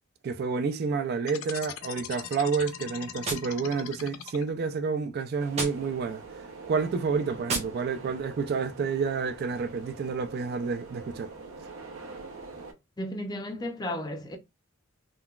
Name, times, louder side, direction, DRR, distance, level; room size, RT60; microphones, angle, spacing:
voice 1, 0.2-6.2 6.7-11.3, right 5 dB, 50° right, 0.3 m, -29 dB
sound 1, 1.2-4.8, left 10 dB, 80° left, 0.4 m, -40 dB
Gunshot gunfire, 3.2-4.3 5.5-6.3 7.4-8.3, right 3 dB, 35° right, 0.7 m, -36 dB
sound 2, 5.4-12.7, right 4 dB, 85° right, 0.7 m, -44 dB
voice 2, 13.0-14.4, left 1 dB, 20° left, 0.5 m, -34 dB
3.7 x 2.2 x 2.3 m
head